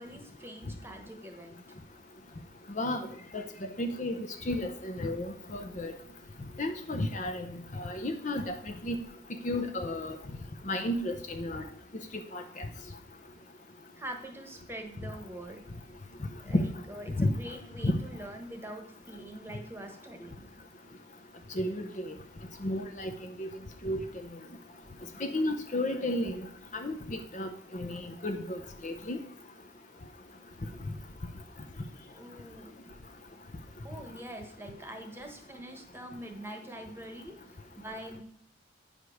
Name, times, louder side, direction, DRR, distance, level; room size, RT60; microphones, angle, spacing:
voice 1, 0.0-1.6 13.9-15.7 16.4-20.5 30.7-30.8 32.1-32.7 33.8-37.6 37.8-38.2, right 1 dB, 10° right, 4 dB, 1.2 m, -44 dB
voice 2, 2.8-3.1 3.3-6.0 6.6-8.6 8.8-9.0 9.4-10.2 10.7-11.6 12.3-12.7 16.5-16.6 17.2-17.3 17.8-18.0 21.5-22.1 22.6-23.1 23.4-23.5 23.8-24.0 25.2-26.5 26.7-29.2, left 1 dB, 40° left, 5 dB, 0.7 m, -32 dB
9.5 x 5.2 x 6.3 m, 0.66 s
head